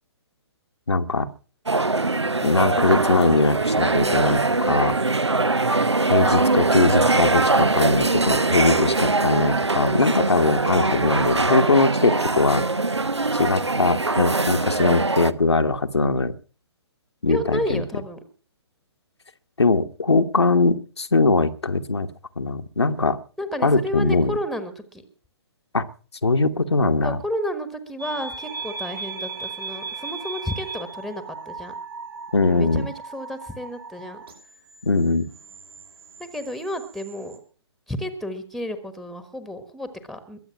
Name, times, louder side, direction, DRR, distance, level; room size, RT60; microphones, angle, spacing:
voice 1, 0.9-1.3 2.4-5.0 6.1-12.6 13.3-16.3 17.2-17.8 19.6-22.1 22.4-23.2 23.6-24.4 25.7-25.9 26.2-27.2 32.3-32.9 34.8-35.3, left 3 dB, 75° left, 6 dB, 1.3 m, -21 dB
sound 1, 1.7-15.3, right 3 dB, 80° right, 0.9 m, -22 dB
voice 2, 17.3-18.2 23.4-25.0 27.0-31.7 32.4-34.2 36.2-37.4 37.9-40.4, equal, ahead, 10 dB, 1.4 m, -32 dB
sound 2, 28.0-37.4, right 4 dB, 60° right, 6.1 m, -37 dB
22.0 x 8.3 x 5.8 m, 0.39 s
figure-of-eight pair, 125°, 14 cm